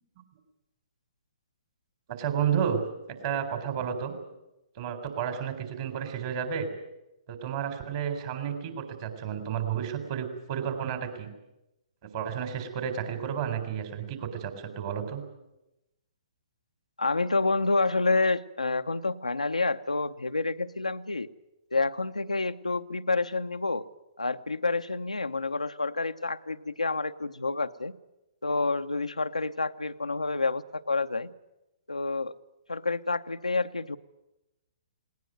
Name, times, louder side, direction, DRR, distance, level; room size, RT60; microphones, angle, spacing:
voice 1, 2.1-2.8 3.2-4.2 4.8-6.7 7.3-11.3 12.1-15.2, right 8 dB, 45° right, 7 dB, 4.1 m, -31 dB
voice 2, 17.0-21.3 21.7-23.8 24.2-27.9 28.4-31.3 31.9-32.3 32.7-34.0, left 3 dB, 85° left, 9 dB, 0.8 m, -28 dB
19.0 x 19.0 x 9.3 m, 0.94 s
figure-of-eight pair, 125°, 4 cm